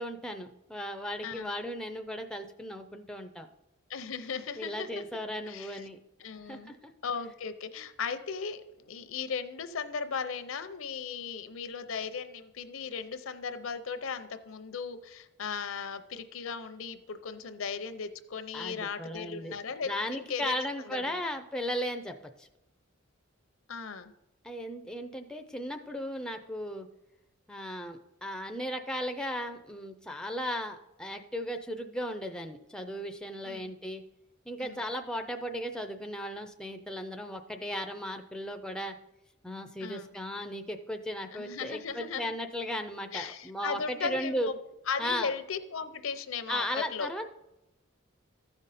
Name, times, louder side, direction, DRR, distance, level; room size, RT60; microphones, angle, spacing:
voice 1, 0.0-3.5 4.6-6.0 6.5-6.9 18.5-19.6 19.8-22.5 24.4-26.9 27.5-34.0 34.5-39.0 39.4-44.5 45.0-45.3 46.5-47.2, equal, 5° left, 5 dB, 0.4 m, -36 dB
voice 2, 3.9-4.9 5.4-5.8 6.2-6.7 7.0-21.2 23.7-24.1 33.4-33.7 34.6-34.9 39.8-40.1 41.3-42.4 43.1-44.5 44.9-46.6 46.9-47.1, left 5 dB, 75° left, 10 dB, 0.6 m, -37 dB
14.0 x 5.2 x 4.1 m, 0.94 s
head